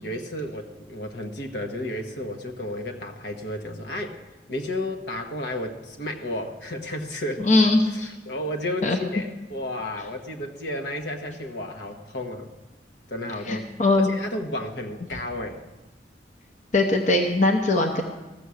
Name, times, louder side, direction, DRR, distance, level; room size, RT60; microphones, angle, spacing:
voice 1, 0.0-4.2 4.5-7.5 7.9-12.5 13.1-13.7 14.1-15.6, left 1 dB, 70° left, 3 dB, 1.2 m, -32 dB
voice 2, 7.4-8.1 8.8-9.0 13.5-14.1 16.7-18.0, left 2 dB, 45° left, 4 dB, 0.8 m, -20 dB
14.5 x 7.0 x 6.4 m, 1.1 s
head